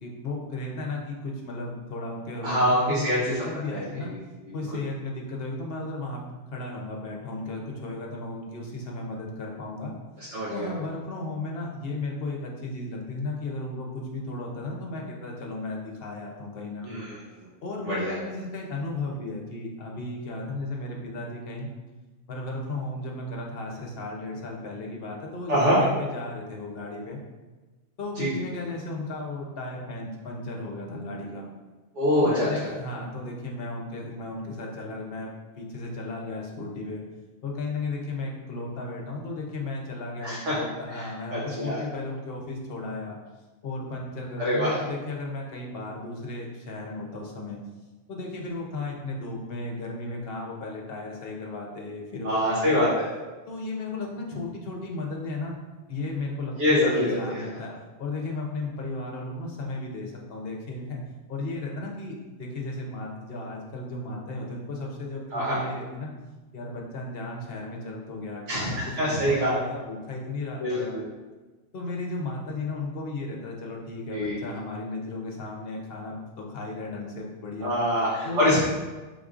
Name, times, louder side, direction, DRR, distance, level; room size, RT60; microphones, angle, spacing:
voice 1, 0.0-4.1 4.5-9.9 10.5-17.0 17.6-21.7 22.3-27.2 28.0-31.4 32.2-35.3 35.6-37.0 37.4-43.2 43.6-47.6 48.1-52.9 53.5-55.6 55.9-57.7 58.0-61.0 61.3-66.1 66.5-71.0 71.7-77.7 78.2-78.5, left 2 dB, 60° left, -1 dB, 0.9 m, -35 dB
voice 2, 2.4-3.2 3.7-4.1 10.3-10.7 16.8-17.2 17.8-18.1 25.5-25.8 28.1-28.3 31.9-32.5 40.2-40.5 40.9-41.0 41.3-41.8 44.4-44.8 52.2-53.0 56.6-57.4 65.3-65.6 68.5-69.5 70.6-71.1 74.1-74.4 77.6-78.6, equal, 85° right, -8 dB, 1.4 m, -24 dB
5.1 x 3.7 x 2.4 m, 1.2 s
omnidirectional pair, 1.2 m